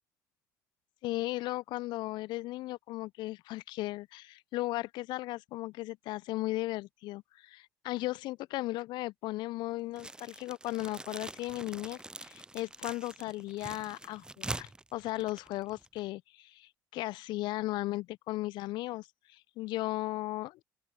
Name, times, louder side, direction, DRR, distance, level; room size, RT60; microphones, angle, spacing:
voice 1, 1.0-20.6, left 18 dB, 60° left, 0.8 m, -36 dB
sound 1, 9.9-16.1, right 2 dB, 10° right, 0.5 m, -44 dB
open air
figure-of-eight pair, 55°, 9 cm